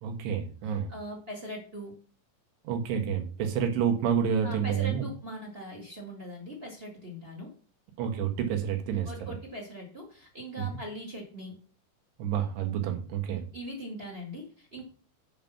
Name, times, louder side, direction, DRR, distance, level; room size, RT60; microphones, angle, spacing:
voice 1, 0.0-0.9 2.7-5.1 8.0-9.1 10.6-10.7 12.2-13.4, right 8 dB, 75° right, 3 dB, 3.5 m, -29 dB
voice 2, 0.6-1.9 4.4-7.5 9.0-11.5 13.3-14.8, equal, 35° right, 1 dB, 0.9 m, -41 dB
8.6 x 5.4 x 5.8 m, 0.39 s
omnidirectional pair, 5.1 m